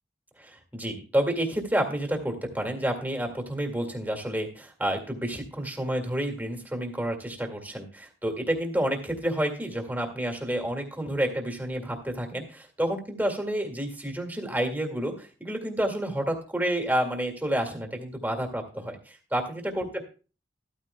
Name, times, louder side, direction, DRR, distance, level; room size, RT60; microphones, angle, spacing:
voice 1, 0.4-20.0, right 1 dB, 10° right, 2 dB, 2.0 m, -29 dB
14.0 x 13.5 x 2.3 m, 0.35 s
head